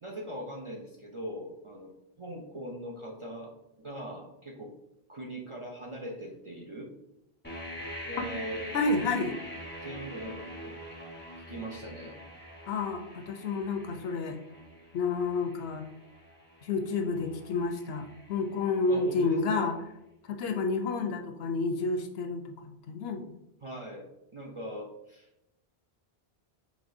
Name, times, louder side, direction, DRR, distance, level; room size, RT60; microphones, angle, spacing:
voice 1, 0.0-3.5 3.8-4.7 5.1-6.9 8.0-8.8 9.8-11.0 11.4-12.2 18.9-19.7 23.6-24.1 24.3-25.3, equal, 45° right, -2 dB, 0.4 m, -41 dB
sound 1, 7.4-19.2, equal, 10° left, 0.7 m, -44 dB
voice 2, 8.7-9.4 12.7-14.4 14.9-15.9 16.6-19.7 20.3-23.3, left 3 dB, 75° left, 5 dB, 0.8 m, -30 dB
5.3 x 3.1 x 2.5 m, 0.89 s
omnidirectional pair, 1.1 m